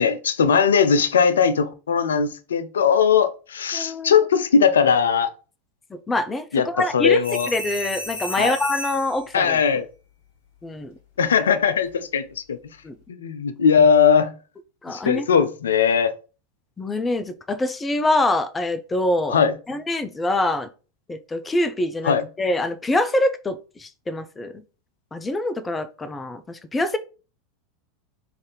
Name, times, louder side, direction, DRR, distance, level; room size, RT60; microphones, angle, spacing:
voice 1, 0.0-5.3 6.5-7.5 8.4-8.6 9.3-9.9 11.2-12.6 13.2-14.3 14.9-16.1 19.3-19.5 22.0-22.2, left 6 dB, 75° left, 0.4 m, -19 dB
voice 2, 3.7-4.2 5.9-7.2 7.5-9.6 10.6-10.9 12.8-13.0 14.8-15.3 16.8-19.4 19.7-20.7 21.1-24.6 25.1-27.0, left 2 dB, 15° left, 0.4 m, -25 dB
sound 1, 7.2-9.2 11.6-11.9, left 1 dB, 55° left, 1.3 m, -32 dB
3.2 x 2.6 x 3.8 m
figure-of-eight pair, 85°, 0 cm